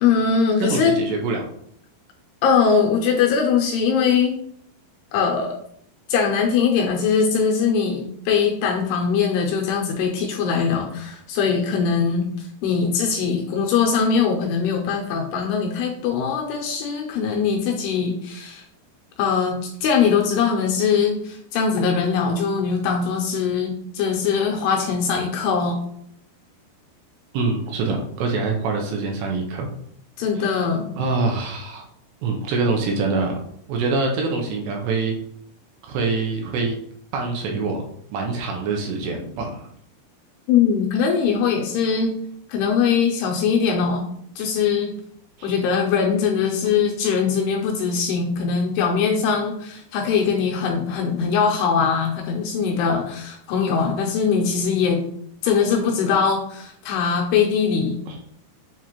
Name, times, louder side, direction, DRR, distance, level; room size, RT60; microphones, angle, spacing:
voice 1, 0.0-0.9 2.4-4.4 5.1-5.5 6.1-12.3 12.6-18.6 19.2-19.5 19.8-25.8 30.2-30.9 40.5-42.2 42.5-44.1 44.4-44.9 45.4-55.0 55.4-58.0, left 6 dB, 80° left, 0 dB, 2.5 m, -21 dB
voice 2, 0.6-1.5 27.3-29.7 30.4-30.6 30.9-31.8 32.2-33.4 33.7-35.2 35.8-36.8 37.1-39.7 45.4-45.5 58.1-58.2, right 3 dB, 80° right, 1 dB, 2.6 m, -25 dB
7.2 x 2.5 x 2.9 m, 0.67 s
omnidirectional pair, 4.9 m